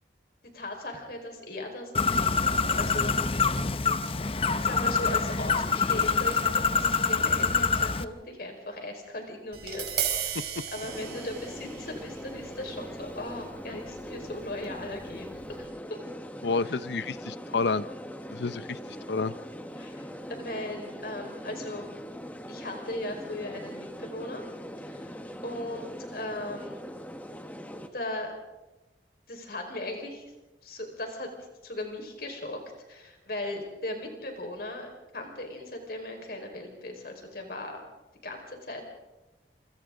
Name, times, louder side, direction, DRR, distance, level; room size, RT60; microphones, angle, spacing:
voice 1, 0.5-3.4 4.6-9.9 10.2-16.0 19.8-21.8 22.5-24.4 24.8-25.2 25.4-26.8 27.9-28.3 29.3-30.2 30.6-31.3 31.6-32.6 32.9-37.8 38.2-38.8, left 1 dB, 60° left, 3 dB, 4.9 m, -38 dB
Bird, 1.9-8.0, left 5 dB, 30° left, 0.7 m, -25 dB
Tap, 9.5-15.7, right 9 dB, 65° right, 4.3 m, -37 dB
sound 1, 10.8-27.9, equal, 10° left, 1.4 m, -41 dB
voice 2, 16.4-17.9 18.3-18.8 19.1-19.3, left 4 dB, 75° left, 15 dB, 0.7 m, -29 dB
28.5 x 25.5 x 3.9 m, 1.0 s
head